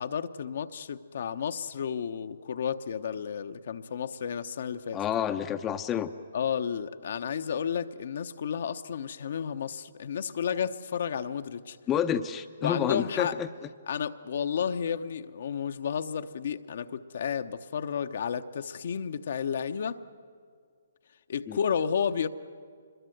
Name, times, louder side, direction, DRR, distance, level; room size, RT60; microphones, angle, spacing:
voice 1, 0.0-5.0 6.3-11.8 12.6-13.4 13.9-20.0 21.3-22.3, left 7 dB, 60° left, 0.9 m, -32 dB
voice 2, 4.9-6.1 11.9-13.5 21.5-21.6, left 9 dB, 20° left, 0.7 m, -29 dB
25.0 x 21.5 x 7.9 m
figure-of-eight pair, 135°, 0 cm